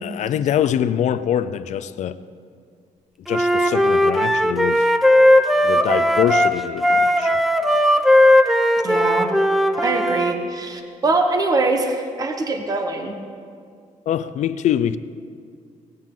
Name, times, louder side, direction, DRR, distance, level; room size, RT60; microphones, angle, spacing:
voice 1, 0.0-2.2 3.3-4.9 5.6-7.4 14.1-15.0, left 10 dB, 60° left, 14 dB, 0.5 m, -24 dB
Wind instrument woodwind instrument, 3.3-10.3, left 1 dB, ahead, 0.5 m, -17 dB
voice 2, 8.8-9.3 9.8-13.1, right 3 dB, 30° right, 5 dB, 1.2 m, -23 dB
19.0 x 16.5 x 3.8 m, 2.2 s
cardioid pair, 165°, 13 cm